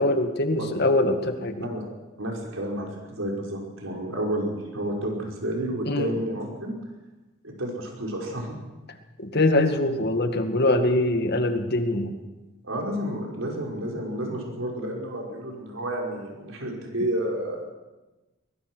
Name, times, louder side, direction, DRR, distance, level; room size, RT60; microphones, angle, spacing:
voice 1, 0.0-1.7 5.9-6.1 9.2-12.2, left 1 dB, 55° left, 6 dB, 2.1 m, -23 dB
voice 2, 2.2-6.8 7.4-8.6 12.6-17.6, right 1 dB, 75° right, 0 dB, 5.4 m, -30 dB
23.0 x 21.0 x 6.3 m, 1.1 s
head